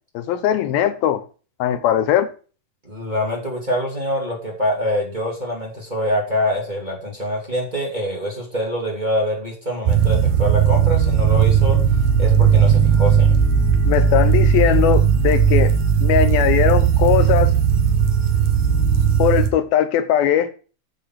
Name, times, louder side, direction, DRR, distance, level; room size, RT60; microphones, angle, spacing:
voice 1, 0.1-1.2 1.6-2.3 13.9-15.7 16.0-17.5 19.2-20.5, left 10 dB, 90° left, 2.9 m, -19 dB
voice 2, 2.9-11.8 12.2-13.4, equal, 15° right, 2.4 m, -25 dB
sound 1, 9.9-19.5, right 7 dB, 85° right, 3.3 m, -16 dB
7.9 x 7.1 x 5.9 m
omnidirectional pair, 4.1 m